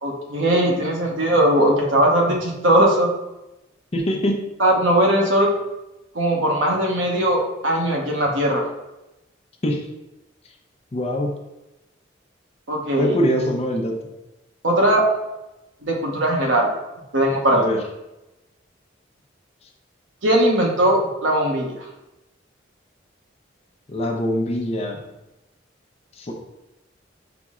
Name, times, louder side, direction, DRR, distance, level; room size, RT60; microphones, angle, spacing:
voice 1, 0.0-3.1 4.6-5.5 6.1-8.6 12.7-13.2 14.6-15.0 15.8-16.7 17.1-17.6 20.2-21.7, right 1 dB, 85° right, 0 dB, 0.9 m, -19 dB
voice 2, 3.9-4.4 9.6-9.9 10.9-11.3 13.0-14.0 17.5-17.8 23.9-25.0 26.2-26.3, equal, 35° left, 1 dB, 0.5 m, -23 dB
5.9 x 2.0 x 3.6 m, 0.96 s
head